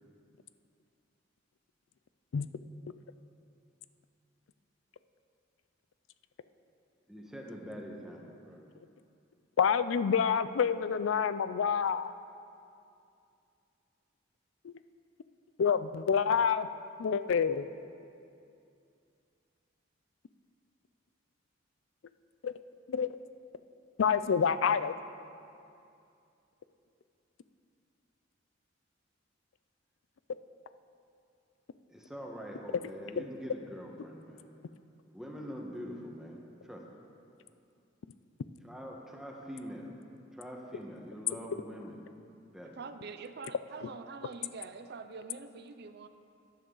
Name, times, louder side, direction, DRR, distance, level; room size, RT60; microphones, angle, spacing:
voice 1, 7.1-8.7 31.9-34.5 35.0-36.8 38.6-39.9 40.3-42.0 42.5-42.8, equal, 5° right, -1 dB, 1.2 m, -44 dB
voice 2, 9.6-12.1 14.6-14.7 15.6-16.7 17.0-17.7 22.4-22.5 22.9-23.1 24.0-24.9 43.8-43.9, left 6 dB, 85° left, 13 dB, 0.4 m, -27 dB
voice 3, 42.8-46.1, right 4 dB, 60° right, 9 dB, 0.5 m, -45 dB
14.0 x 10.0 x 3.9 m, 2.5 s
head